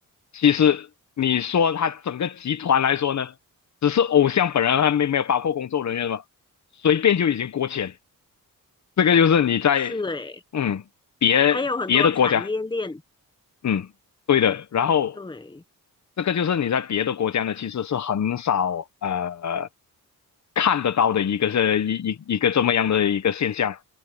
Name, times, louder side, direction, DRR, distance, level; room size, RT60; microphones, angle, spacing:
voice 1, 0.3-0.9 1.2-3.3 3.8-6.2 6.8-7.9 9.0-10.0 10.5-10.8 11.2-11.6 11.9-12.4 13.6-13.9 14.3-15.2 16.2-19.7 20.6-23.8, left 8 dB, 55° left, 1.1 m, -22 dB
voice 2, 9.9-10.4 11.5-13.0 15.2-15.6, left 3 dB, 15° left, 1.3 m, -29 dB
wide cardioid pair, 130°, 35 cm